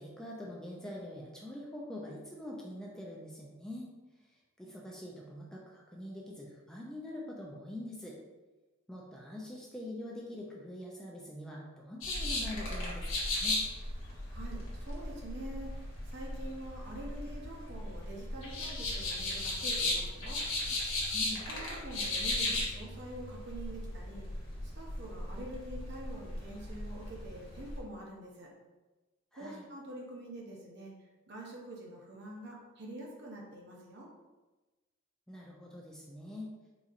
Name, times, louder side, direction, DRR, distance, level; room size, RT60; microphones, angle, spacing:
voice 1, 0.0-3.9 4.6-8.2 8.9-13.6 21.1-21.4 29.3-29.7 35.3-36.5, left 1 dB, 5° left, -3 dB, 0.4 m, -44 dB
sound 1, 12.0-27.8, left 2 dB, 70° left, 1.0 m, -36 dB
voice 2, 14.3-20.4 21.5-24.2 24.6-28.5 29.4-30.9 31.3-34.1, right 1 dB, 55° right, -2 dB, 0.8 m, -46 dB
3.9 x 2.8 x 2.4 m, 1.2 s
head